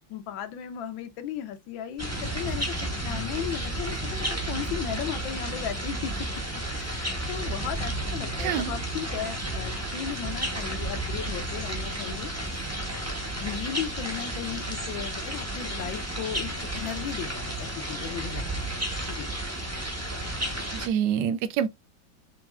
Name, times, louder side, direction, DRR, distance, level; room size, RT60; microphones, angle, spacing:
voice 1, 0.1-6.1 6.7-12.3 13.4-18.4 19.1-19.3, left 9 dB, 80° left, 1.5 m, -36 dB
sound 1, 2.0-20.9, right 1 dB, 15° right, 0.5 m, -32 dB
voice 2, 8.4-8.7 20.7-21.7, right 9 dB, 75° right, 1.1 m, -26 dB
5.9 x 3.1 x 2.4 m
omnidirectional pair, 2.1 m